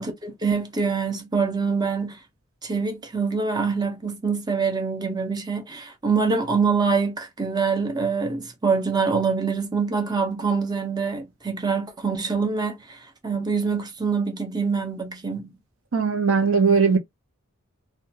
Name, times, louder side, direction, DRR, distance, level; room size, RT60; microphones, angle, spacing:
voice 1, 0.0-2.2 2.6-15.5, right 5 dB, 20° right, 0.6 m, -25 dB
voice 2, 15.9-17.0, right 5 dB, 65° right, 0.6 m, -19 dB
2.4 x 2.2 x 2.7 m
head